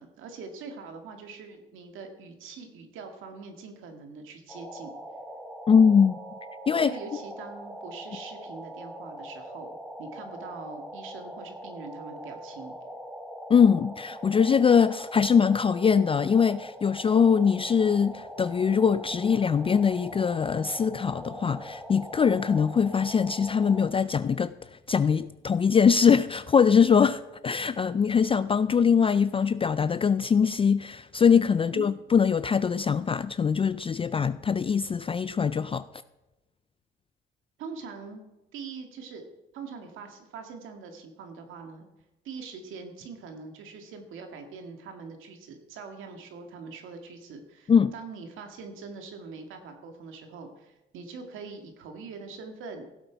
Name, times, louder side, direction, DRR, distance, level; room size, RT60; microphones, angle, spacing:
voice 1, 0.0-4.9 6.8-9.7 10.0-12.7 31.6-31.8 37.6-38.2 38.5-39.3 39.5-41.9 42.2-52.9, right 4 dB, 90° right, 2.0 m, -43 dB
sound 1, 4.5-23.9, equal, ahead, 1.6 m, -42 dB
voice 2, 5.7-6.1 6.7-6.9 13.5-35.9 47.7-47.9, left 6 dB, 30° left, 0.3 m, -22 dB
16.5 x 7.8 x 4.6 m
cardioid pair, 90°, 20 cm